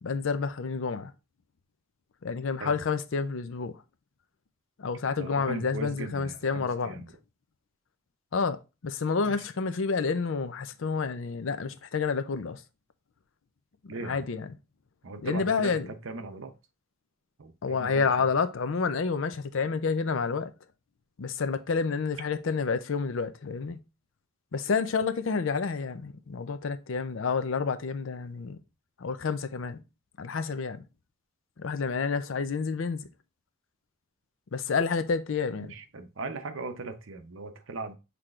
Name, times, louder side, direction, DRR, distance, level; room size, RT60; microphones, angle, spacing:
voice 1, 0.0-1.1 2.2-3.7 4.8-7.0 8.3-12.6 14.0-14.5 15.2-15.9 17.6-20.5 21.2-23.8 24.5-28.6 29.0-29.8 30.2-30.8 31.6-33.1 34.5-35.7, left 5 dB, 70° left, 0.5 m, -29 dB
voice 2, 5.2-7.1 9.2-9.4 13.9-14.2 15.0-16.6 17.4-18.3 35.6-38.0, right 3 dB, 70° right, 0.7 m, -39 dB
5.9 x 3.4 x 2.4 m
head